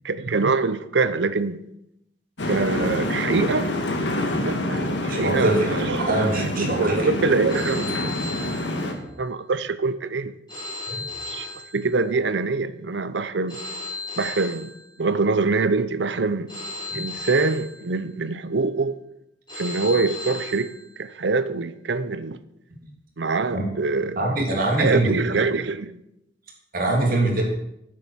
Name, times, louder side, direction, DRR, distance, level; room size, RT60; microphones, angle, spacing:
voice 1, 0.0-1.6 2.5-3.7 4.4-8.3 9.2-10.3 11.3-11.5 11.7-13.6 14.2-14.7 15.0-16.5 16.9-19.0 19.5-20.7 21.0-22.4 23.2-24.4 24.8-26.0, right 4 dB, 75° right, 0.7 m, -24 dB
sound 1, 2.4-8.9, left 1 dB, 85° left, 1.6 m, -27 dB
voice 2, 5.1-5.7 6.0-7.1 8.8-9.0 10.9-11.0 16.9-17.0 23.5-23.6 24.2-25.4 26.7-27.4, right 1 dB, 55° right, 2.9 m, -23 dB
Telephone, 7.5-9.4 10.5-12.4 13.5-15.4 16.5-18.3 19.5-21.3, left 3 dB, 25° left, 4.0 m, -36 dB
9.6 x 7.7 x 7.1 m
head